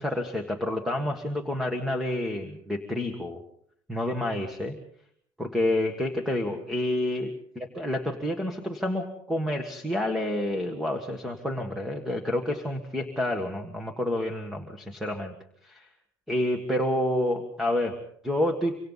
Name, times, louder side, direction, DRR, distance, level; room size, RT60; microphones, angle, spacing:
voice 1, 0.0-3.4 3.9-4.8 5.4-15.3 15.6-15.9 16.3-18.0 18.2-18.8, left 1 dB, 5° right, 5 dB, 1.6 m, -29 dB
25.5 x 25.0 x 4.1 m, 0.64 s
cardioid pair, 175°, 8 cm